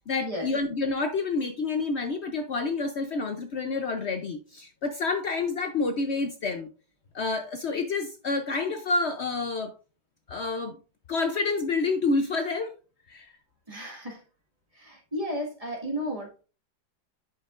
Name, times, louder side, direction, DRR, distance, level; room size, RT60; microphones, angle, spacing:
voice 1, 0.1-6.7 7.1-9.7 10.3-10.8 11.1-12.7 13.1-13.3, left 3 dB, 85° left, 0.5 m, -28 dB
voice 2, 13.7-14.2 14.7-16.4, equal, 20° right, 1.6 m, -33 dB
10.5 x 5.7 x 2.5 m
omnidirectional pair, 2.0 m